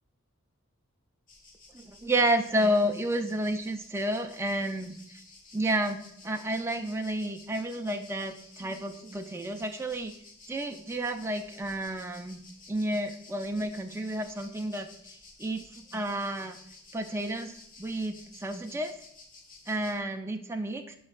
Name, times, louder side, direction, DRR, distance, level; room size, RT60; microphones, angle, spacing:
sound 1, 1.3-20.0, left 3 dB, 40° left, 1.1 m, -53 dB
voice 1, 1.7-5.2 5.5-10.1 10.5-12.4 12.7-14.9 15.4-16.6 16.9-18.9 19.7-21.0, right 1 dB, 10° right, 5 dB, 0.4 m, -31 dB
10.5 x 3.9 x 2.4 m, 0.71 s
head